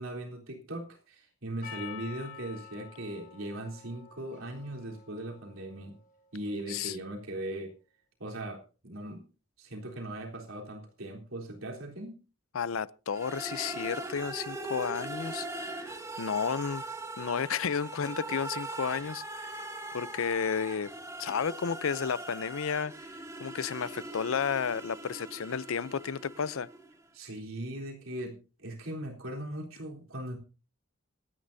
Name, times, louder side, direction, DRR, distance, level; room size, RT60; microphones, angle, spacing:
voice 1, 0.0-6.0 6.3-7.7 8.2-9.2 9.6-12.2 27.1-30.4, right 1 dB, 90° right, 3.7 m, -39 dB
Percussion, 1.6-6.2, left 7 dB, 40° left, 4.5 m, -49 dB
voice 2, 12.5-15.8 16.2-16.8 17.2-19.6 19.9-20.9 21.2-22.9 23.4-26.7, left 6 dB, 85° left, 0.6 m, -32 dB
sound 1, 13.1-27.0, right 2 dB, 15° right, 2.0 m, -41 dB
25.0 x 9.7 x 2.7 m
head